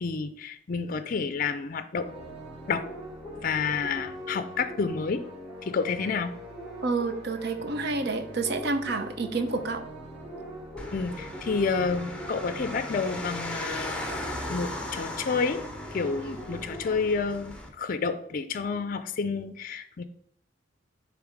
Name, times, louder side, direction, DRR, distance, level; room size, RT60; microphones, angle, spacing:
voice 1, 0.0-2.1 2.7-2.9 3.4-5.2 5.6-6.3 10.9-15.6 15.9-20.0, left 5 dB, 45° left, 10 dB, 0.4 m, -30 dB
sound 1, 1.9-16.9, equal, 25° right, 2.5 m, -41 dB
voice 2, 6.8-9.8, right 3 dB, 55° right, 8 dB, 0.7 m, -29 dB
sound 2, 10.8-17.7, left 1 dB, 5° left, 0.9 m, -38 dB
7.0 x 3.4 x 5.0 m, 0.69 s
head